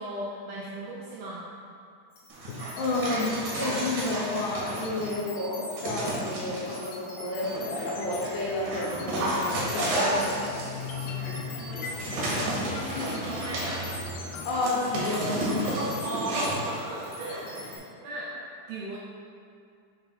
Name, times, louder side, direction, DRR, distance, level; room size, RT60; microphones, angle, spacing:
voice 1, 0.0-1.5 11.1-13.8 15.5-19.0, right 1 dB, 80° right, -6 dB, 2.2 m, -37 dB
sound 1, 2.1-17.8, left 2 dB, 55° left, 2.6 m, -44 dB
Dog, 2.3-5.2 5.8-6.8 7.4-17.8, right 1 dB, 65° right, 2.2 m, -33 dB
voice 2, 2.5-10.5 11.1-11.7 14.4-15.8, left 2 dB, 75° left, -6 dB, 3.1 m, -31 dB
sound 2, 7.3-14.5, left 4 dB, 90° left, 2.3 m, -39 dB
6.9 x 6.7 x 2.5 m, 2.4 s
omnidirectional pair, 5.1 m